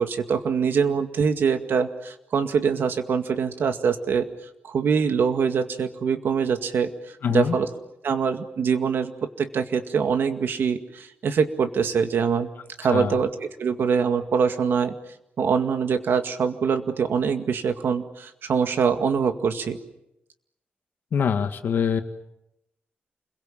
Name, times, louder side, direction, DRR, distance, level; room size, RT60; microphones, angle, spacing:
voice 1, 0.0-4.3 4.6-7.7 8.0-12.5 12.8-14.9 15.4-19.8, right 6 dB, 75° right, 7 dB, 2.0 m, -24 dB
voice 2, 7.2-7.6 12.9-13.2 21.1-22.0, left 7 dB, 70° left, 8 dB, 1.8 m, -24 dB
29.0 x 22.5 x 7.4 m, 0.85 s
wide cardioid pair, 165°, 4 cm